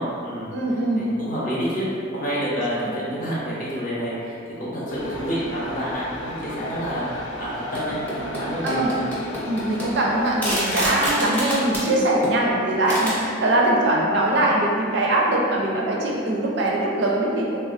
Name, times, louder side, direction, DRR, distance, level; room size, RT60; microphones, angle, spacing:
voice 1, 0.0-0.5 0.9-1.9 2.1-8.8, equal, 45° left, -8 dB, 0.6 m, -28 dB
voice 2, 0.5-1.1 8.6-8.9 9.4-17.6, right 1 dB, 60° right, -2 dB, 0.4 m, -22 dB
sound 1, 4.9-10.8, left 2 dB, 90° left, 0.4 m, -35 dB
sound 2, 7.7-8.4 8.7-11.9 12.2-12.4 12.7-13.2, equal, 10° left, 0.6 m, -27 dB
3.0 x 2.3 x 2.4 m, 2.4 s
head